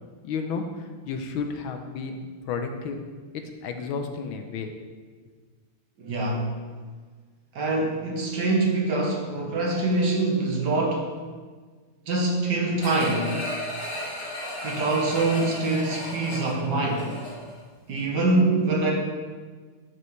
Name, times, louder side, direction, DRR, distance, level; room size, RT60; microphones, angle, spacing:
voice 1, 0.2-3.0 3.3-4.7, left 5 dB, 80° left, 5 dB, 1.5 m, -32 dB
voice 2, 6.0-6.5 7.5-11.1 12.1-13.3 14.6-17.1 17.9-18.9, right 2 dB, 60° right, -1 dB, 1.6 m, -24 dB
sound 1, 12.8-17.6 18.0-18.1, left 1 dB, 50° left, 3.0 m, -34 dB
10.5 x 5.4 x 3.2 m, 1.5 s
omnidirectional pair, 2.3 m